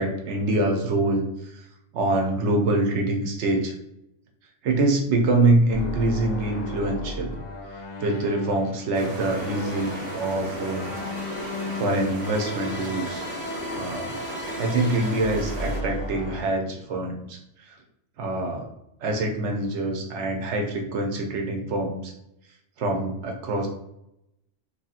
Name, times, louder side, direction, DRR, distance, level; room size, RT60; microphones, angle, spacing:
voice 1, 0.0-1.7 1.9-3.7 4.6-7.4 7.7-10.9 11.2-11.3 11.7-13.2 13.7-14.1 14.6-17.7 18.2-18.7 19.0-22.1 22.8-23.7, right 2 dB, 70° right, 2 dB, 0.9 m, -25 dB
sound 1, 5.7-16.4, left 1 dB, 75° left, 1.1 m, -35 dB
sound 2, 8.9-15.8, right 1 dB, 35° right, 0.7 m, -35 dB
3.0 x 2.7 x 2.4 m, 0.83 s
omnidirectional pair, 1.3 m